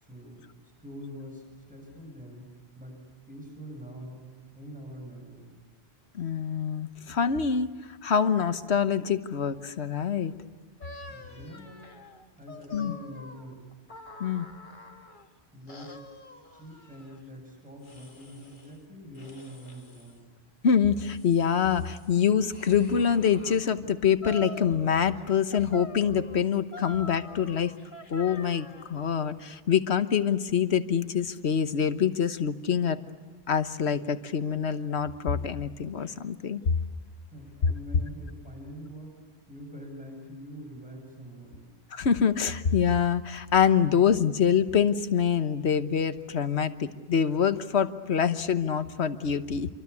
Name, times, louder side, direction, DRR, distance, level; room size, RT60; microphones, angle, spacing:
voice 1, 0.0-0.5 0.8-4.3 4.6-5.5 11.1-11.8 12.4-13.7 15.5-16.0 16.5-20.3 37.3-39.2 39.5-41.7, equal, 5° right, 0 dB, 7.7 m, -44 dB
voice 2, 6.1-7.7 8.0-10.3 12.7-12.9 14.2-14.5 20.6-27.7 28.1-33.0 33.5-36.6 41.9-49.7, left 7 dB, 80° left, 11 dB, 1.4 m, -25 dB
sound 1, 10.8-15.3 15.7-17.2 17.8-18.8 19.1-20.2 20.7-23.6 24.2-25.2 25.5-29.0, equal, 50° left, 2.1 m, -46 dB
28.0 x 24.5 x 8.4 m, 1.3 s
omnidirectional pair, 1.1 m